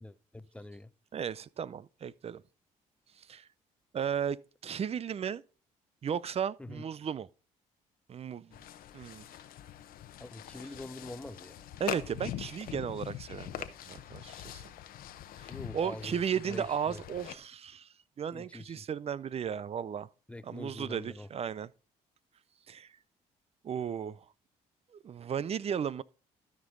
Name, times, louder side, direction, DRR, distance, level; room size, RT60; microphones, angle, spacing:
voice 1, 0.0-0.9 6.6-6.8 10.2-11.7 15.5-17.0 18.3-18.9 20.3-21.3, left 2 dB, 10° left, 0.7 m, -45 dB
voice 2, 1.1-2.4 3.2-3.5 3.9-5.4 6.0-7.3 8.1-8.6 8.9-9.2 11.8-14.6 15.4-17.9 18.2-20.1 20.4-21.7 22.7-22.9 23.6-24.2 24.9-26.0, right 8 dB, 40° right, 0.5 m, -35 dB
sound 1, 8.5-17.4, left 12 dB, 75° left, 0.9 m, -43 dB
13.0 x 5.3 x 3.8 m
supercardioid pair, 65°, 15 cm